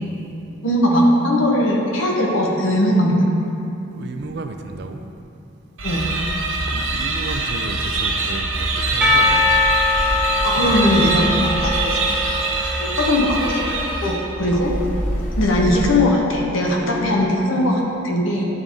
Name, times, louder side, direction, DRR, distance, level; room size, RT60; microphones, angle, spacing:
voice 1, 0.6-3.3 5.8-6.1 10.4-12.4 12.8-14.7 15.4-18.5, left 1 dB, 90° left, -1 dB, 1.0 m, -19 dB
voice 2, 3.9-5.0 6.6-9.7 14.4-14.6, right 3 dB, 55° right, 6 dB, 0.4 m, -32 dB
sound 1, 5.8-14.5, right 3 dB, 80° right, 0.9 m, -24 dB
Percussion / Church bell, 9.0-13.8, left 3 dB, 5° right, 0.6 m, -22 dB
sound 2, 9.8-10.5 11.4-12.1 14.5-16.0, equal, 40° left, 0.8 m, -27 dB
10.5 x 3.7 x 3.7 m, 2.7 s
head